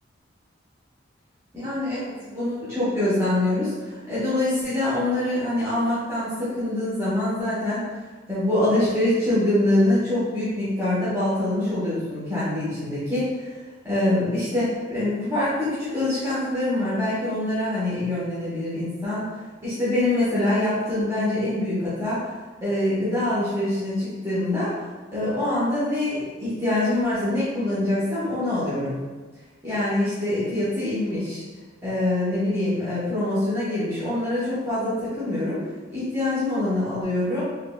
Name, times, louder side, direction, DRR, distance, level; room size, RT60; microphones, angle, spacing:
voice 1, 1.5-3.7 4.1-7.8 8.3-13.5 13.8-19.3 19.6-22.3 22.6-24.7 25.1-29.0 29.6-31.4 31.8-35.6 35.9-37.4, left 1 dB, 15° right, -13 dB, 1.0 m, -24 dB
3.5 x 3.1 x 2.2 m, 1.4 s
head